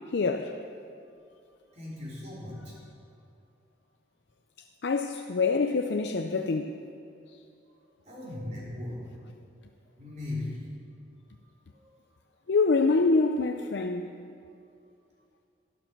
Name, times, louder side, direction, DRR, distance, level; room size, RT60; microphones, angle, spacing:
voice 1, 0.1-0.6 4.8-6.8 12.5-14.1, left 3 dB, 75° left, 0.5 m, -25 dB
voice 2, 1.7-2.7 8.0-9.0 10.0-10.6 11.7-11.9, left 2 dB, 40° right, 4.1 m, -38 dB
12.0 x 11.5 x 6.0 m
head